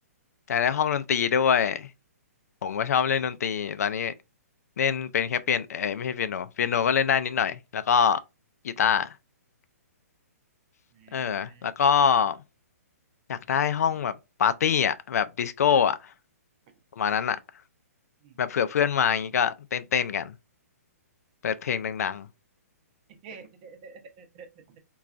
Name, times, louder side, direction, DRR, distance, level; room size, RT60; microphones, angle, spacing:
voice 1, 0.5-1.9 2.6-4.1 4.8-8.2 8.6-9.1 11.1-12.4 13.3-14.1 14.4-16.0 17.0-17.4 18.4-20.3 21.4-22.3, left 7 dB, 70° left, 0.4 m, -25 dB
voice 2, 10.9-11.6 12.1-12.3 18.2-18.4 23.1-24.8, right 5 dB, 35° right, 0.7 m, -49 dB
3.8 x 2.3 x 2.4 m
hypercardioid pair, 150°, 9 cm